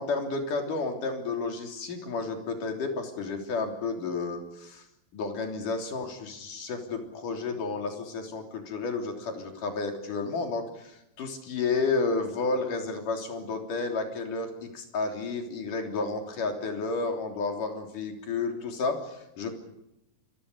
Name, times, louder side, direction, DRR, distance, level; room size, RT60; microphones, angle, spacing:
voice 1, 0.0-4.8 5.1-19.6, left 3 dB, 70° left, 4 dB, 4.9 m, -31 dB
28.0 x 22.5 x 6.8 m, 0.88 s
omnidirectional pair, 3.9 m